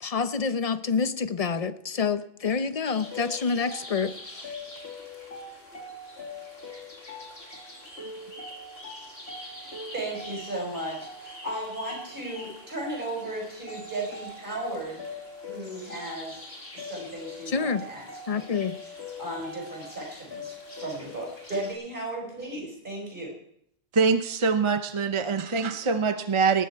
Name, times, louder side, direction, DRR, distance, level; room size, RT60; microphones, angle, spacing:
voice 1, 0.0-4.4 17.5-17.8 18.3-18.8, left 5 dB, 40° left, 12 dB, 0.7 m, -27 dB
sound 1, 2.8-21.7, left 2 dB, 85° left, 2.8 m, -41 dB
voice 2, 9.4-15.0 15.5-16.4 16.7-18.5 19.2-23.3, right 1 dB, 55° right, -1 dB, 5.0 m, -36 dB
voice 3, 23.9-26.6, right 5 dB, 35° right, 8 dB, 0.7 m, -24 dB
19.0 x 10.0 x 4.6 m, 0.71 s
omnidirectional pair, 1.0 m